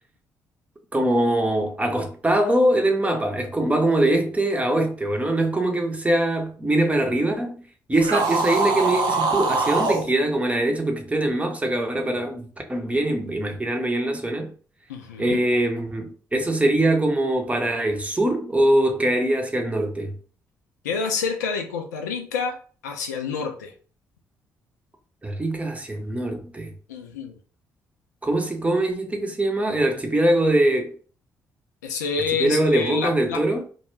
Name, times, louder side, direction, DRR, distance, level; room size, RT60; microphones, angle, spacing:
voice 1, 0.9-7.6 7.9-14.5 15.2-20.1 25.2-26.7 28.2-31.0 32.4-33.6, right 1 dB, 15° right, 0.7 m, -22 dB
sound 1, 8.0-10.1, right 3 dB, 55° right, 0.5 m, -23 dB
voice 2, 14.9-15.4 20.8-22.6 22.8-23.7 26.9-27.4 31.8-33.4, left 5 dB, 80° left, 0.4 m, -28 dB
2.2 x 2.2 x 3.1 m
figure-of-eight pair, 45°, 9 cm